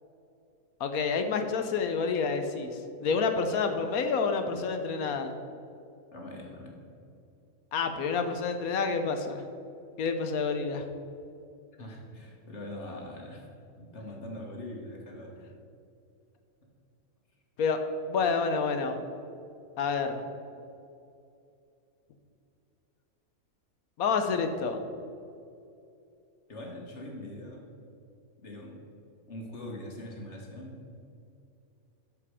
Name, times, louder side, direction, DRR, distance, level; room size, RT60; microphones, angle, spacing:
voice 1, 0.8-2.7 3.0-5.3 7.7-9.4 10.0-10.8 17.6-19.0 19.8-20.2 24.0-24.8, left 5 dB, 80° left, 7 dB, 1.2 m, -28 dB
voice 2, 6.1-6.8 11.8-13.5 13.8-15.3 16.6-16.7 26.5-27.6 28.4-28.8 29.3-30.8, left 1 dB, 50° left, 0 dB, 1.9 m, -42 dB
13.0 x 5.2 x 4.9 m, 2.6 s
omnidirectional pair, 1.5 m